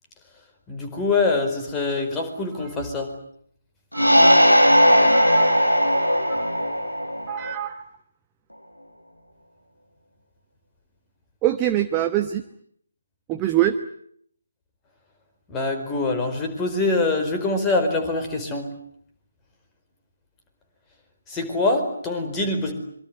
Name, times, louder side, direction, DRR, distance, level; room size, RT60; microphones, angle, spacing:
voice 1, 0.7-3.1 15.5-18.7 21.3-22.7, left 3 dB, 10° left, 4 dB, 4.7 m, -24 dB
sound 1, 3.9-7.5, equal, 90° left, 6.3 m, -17 dB
voice 2, 3.9-4.4 5.1-5.5 6.3-6.5 7.3-7.8 11.4-12.4 13.3-13.8, right 13 dB, 15° right, 6 dB, 1.2 m, -24 dB
26.0 x 24.0 x 9.6 m, 0.68 s
figure-of-eight pair, 150°, 0 cm